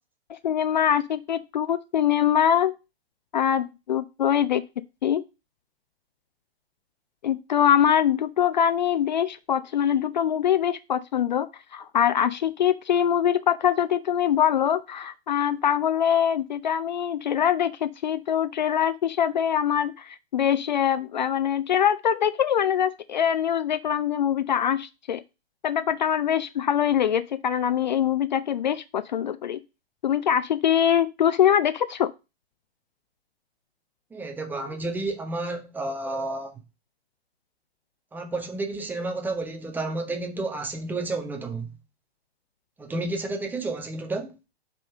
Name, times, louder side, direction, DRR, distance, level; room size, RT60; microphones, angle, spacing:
voice 1, 0.3-2.7 3.3-4.6 5.0-5.2 7.2-25.2 25.6-29.6 30.0-32.1, left 9 dB, 45° left, 0.5 m, -23 dB
voice 2, 34.1-36.5 38.1-41.7 42.8-44.4, right 2 dB, 5° right, 0.8 m, -31 dB
5.3 x 5.3 x 6.3 m
figure-of-eight pair, 115°, 32 cm